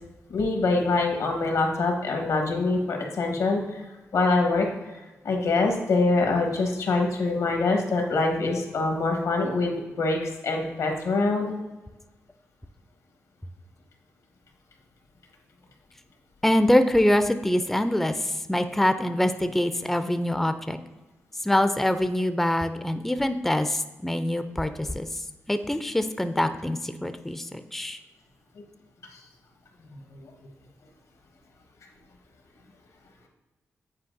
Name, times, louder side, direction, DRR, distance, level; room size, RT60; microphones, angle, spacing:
voice 1, 0.3-3.8 4.1-11.5 29.1-29.2 30.1-30.3, left 3 dB, 80° left, 2 dB, 1.2 m, -25 dB
voice 2, 16.4-20.8 21.4-25.1 25.5-28.0, left 1 dB, 5° left, 9 dB, 0.4 m, -24 dB
8.4 x 4.6 x 2.6 m, 1.1 s
cardioid pair, 50°, 6 cm